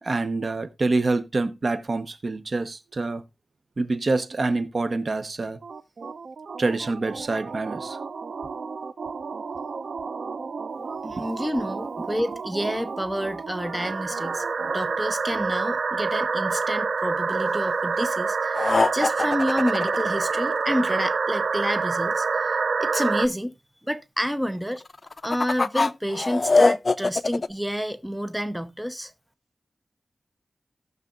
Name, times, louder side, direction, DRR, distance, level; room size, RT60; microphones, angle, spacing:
voice 1, 0.0-3.2 3.8-5.6 6.6-8.0 11.2-11.3 12.0-12.1, right 3 dB, 50° right, 0.8 m, -26 dB
sound 1, 5.6-23.3, right 4 dB, 80° right, 0.5 m, -28 dB
voice 2, 11.0-23.5 23.8-24.8 25.2-29.1, equal, 5° right, 0.8 m, -29 dB
sound 2, 18.5-20.8 24.9-27.5, left 3 dB, 45° left, 0.5 m, -22 dB
17.5 x 6.6 x 2.4 m
wide cardioid pair, 90°, 0 cm